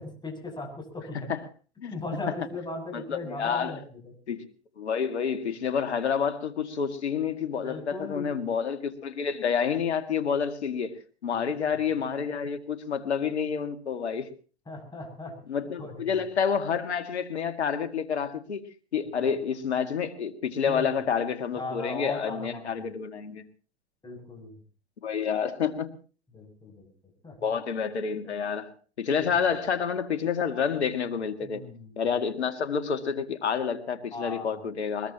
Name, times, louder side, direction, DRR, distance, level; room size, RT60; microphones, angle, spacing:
voice 1, 0.0-1.3 1.9-4.1 7.6-8.5 11.3-11.4 14.7-15.4 15.8-16.2 20.6-20.9 21.6-22.8 24.0-24.6 26.3-26.9 27.2-27.4 31.4-32.0 34.1-34.6, left 2 dB, 15° left, 7.2 m, -38 dB
voice 2, 2.9-3.8 4.3-4.5 4.8-10.9 11.2-14.3 15.5-18.6 18.9-23.4 25.0-25.9 27.4-31.6 32.0-35.1, left 6 dB, 90° left, 2.1 m, -29 dB
22.0 x 21.5 x 3.0 m
hypercardioid pair, 105°, 32 cm